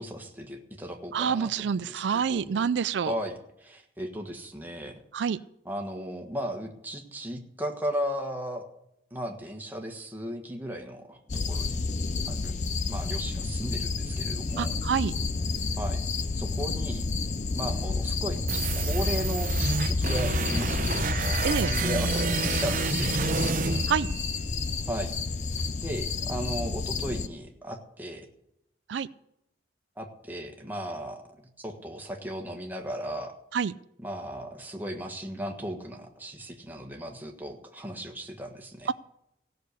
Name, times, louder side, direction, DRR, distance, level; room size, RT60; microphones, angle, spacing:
voice 1, 0.0-2.6 3.0-5.0 5.6-8.7 9.1-11.2 11.5-11.8 12.2-12.6 12.9-14.7 15.8-16.0 16.3-17.0 17.5-21.1 21.6-23.4 24.9-25.1 25.8-28.3 30.0-31.2 31.6-33.3 34.0-38.9, equal, 10° right, 2 dB, 1.5 m, -36 dB
voice 2, 1.1-3.1 5.1-5.4 14.6-15.1 21.4-21.7 23.9-24.1 28.9-29.1 33.5-33.7 38.9-39.0, right 6 dB, 80° right, 15 dB, 0.4 m, -27 dB
sound 1, 11.3-27.3, left 3 dB, 40° left, 0.6 m, -30 dB
sound 2, 18.5-24.5, right 4 dB, 50° right, 0.9 m, -29 dB
16.0 x 6.6 x 8.2 m, 0.81 s
head